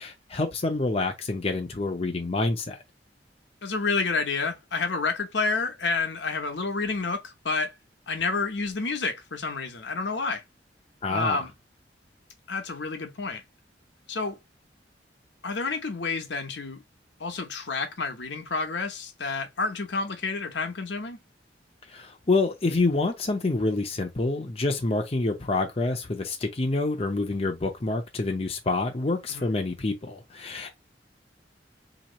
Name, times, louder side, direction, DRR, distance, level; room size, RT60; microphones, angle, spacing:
voice 1, 0.0-2.8 11.0-11.4 21.9-30.8, left 3 dB, 35° left, 0.7 m, -27 dB
voice 2, 3.6-7.7 8.1-10.4 11.1-11.5 12.5-13.4 14.1-14.4 15.4-16.8 17.2-21.2 29.3-29.5, left 4 dB, 75° left, 1.0 m, -29 dB
3.0 x 2.8 x 4.0 m
head